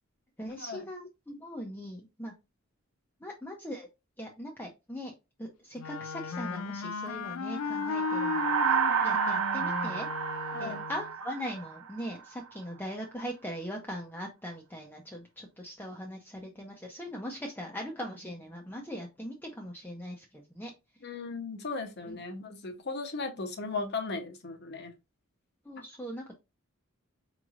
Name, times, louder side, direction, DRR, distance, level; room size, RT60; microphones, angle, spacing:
voice 1, 0.4-2.3 3.2-3.9 4.2-5.1 5.4-10.1 10.6-20.7 22.1-22.2 25.6-26.4, equal, 10° left, 0.6 m, -40 dB
Wind instrument woodwind instrument, 5.8-11.1, left 5 dB, 80° left, 0.4 m, -35 dB
sound 1, 7.6-12.2, right 7 dB, 75° right, 0.5 m, -30 dB
voice 2, 21.0-24.9, left 3 dB, 50° left, 0.8 m, -37 dB
5.1 x 3.1 x 2.4 m
head